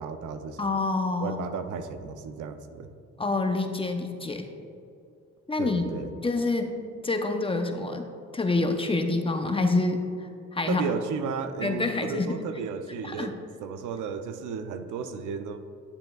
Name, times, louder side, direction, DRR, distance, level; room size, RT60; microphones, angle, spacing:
voice 1, 0.0-0.6 1.2-2.9 5.6-6.1 10.7-15.6, right 5 dB, 80° right, 9 dB, 0.6 m, -34 dB
voice 2, 0.6-1.4 3.2-4.5 5.5-5.9 6.2-6.8 7.0-8.0 8.3-10.8 11.6-12.4 13.0-13.3, left 3 dB, 20° left, 5 dB, 0.7 m, -27 dB
9.9 x 7.7 x 2.4 m, 2.5 s
cardioid pair, 90°, 30 cm